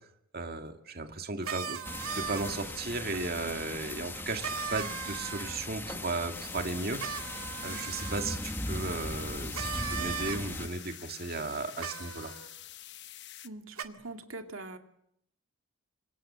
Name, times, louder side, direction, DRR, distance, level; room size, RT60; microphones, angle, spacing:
voice 1, 0.3-1.8 2.1-12.3, right 3 dB, 45° right, 5 dB, 2.2 m, -36 dB
sound 1, 1.4-2.7 4.4-5.6 7.0-8.4 9.5-10.4 11.8-12.5 13.8-13.9, right 6 dB, 85° right, 2.1 m, -38 dB
sound 2, 1.8-10.7, left 1 dB, 10° left, 1.3 m, -39 dB
sound 3, 6.3-13.5, left 12 dB, 50° left, 1.1 m, -47 dB
voice 2, 13.4-14.8, right 2 dB, 65° right, 5 dB, 2.4 m, -43 dB
27.0 x 26.0 x 7.6 m, 0.76 s
head